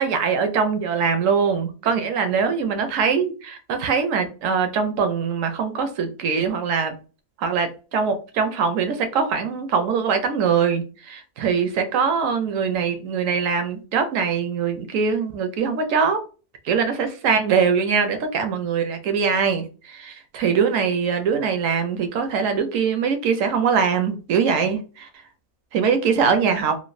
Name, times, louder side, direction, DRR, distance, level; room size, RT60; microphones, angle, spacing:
voice 1, 0.0-7.0 7.4-16.2 16.6-25.1 25.7-26.8, right 6 dB, 70° right, 7 dB, 0.9 m, -22 dB
3.1 x 2.2 x 2.4 m, 0.34 s
omnidirectional pair, 1.5 m